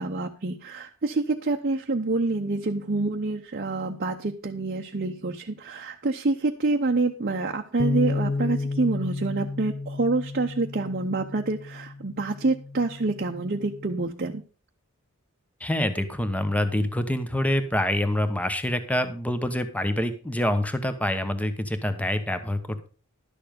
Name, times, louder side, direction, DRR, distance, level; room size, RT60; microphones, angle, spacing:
voice 1, 0.0-14.4, right 3 dB, 45° right, 2 dB, 0.8 m, -27 dB
Bass guitar, 7.8-14.0, left 3 dB, 30° left, 0.5 m, -32 dB
voice 2, 15.6-22.9, left 1 dB, 5° left, 9 dB, 1.0 m, -26 dB
11.5 x 6.9 x 5.1 m, 0.36 s
head